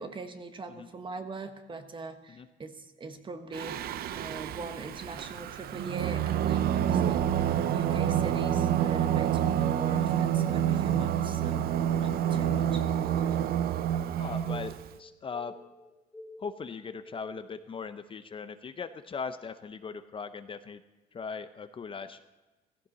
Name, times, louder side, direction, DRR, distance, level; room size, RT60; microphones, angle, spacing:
voice 1, 0.0-3.8 4.1-11.7 12.0-12.9, right 3 dB, 30° right, 8 dB, 1.3 m, -41 dB
Singing, 3.5-14.9, right 10 dB, 65° right, 0.6 m, -28 dB
sound 1, 12.8-17.6, left 1 dB, 5° left, 2.3 m, -50 dB
voice 2, 14.2-15.5 16.4-20.8 21.1-22.2, left 5 dB, 30° left, 10 dB, 0.6 m, -39 dB
15.5 x 15.0 x 4.1 m, 1.1 s
cardioid pair, 110°, 17 cm